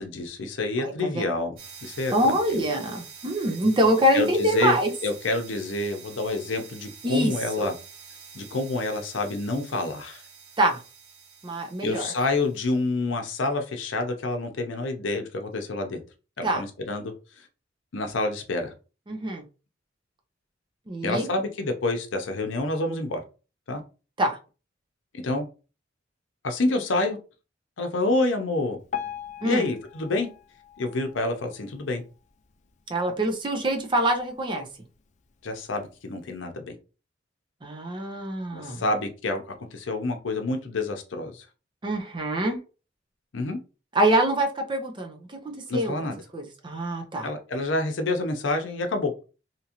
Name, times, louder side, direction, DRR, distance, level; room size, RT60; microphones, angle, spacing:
voice 1, 0.0-1.6 1.8-2.4 4.1-4.7 5.0-7.7 8.3-10.2 11.8-16.0 16.4-17.1 17.9-18.7 21.0-23.2 23.7-23.8 25.1-25.5 26.4-27.2 27.8-28.8 29.4-30.3 30.8-32.0 35.4-36.8 38.5-41.5 43.3-43.6 45.7-46.2 47.2-49.1, left 2 dB, 85° left, 0.6 m, -28 dB
voice 2, 0.8-1.2 2.1-4.9 7.0-7.3 7.6-7.7 10.6-10.8 11.4-12.1 16.4-16.6 19.1-19.4 20.9-21.3 24.2-24.4 29.4-29.7 32.9-34.7 37.6-38.8 41.8-42.6 43.9-47.3, right 1 dB, 25° right, 0.6 m, -25 dB
sound 1, 1.6-12.8, right 5 dB, 50° right, 1.0 m, -47 dB
Piano, 28.9-32.0 32.5-32.7 33.0-33.1 33.8-33.9 34.5-34.6, left 9 dB, 40° left, 0.3 m, -39 dB
2.9 x 2.5 x 2.9 m
head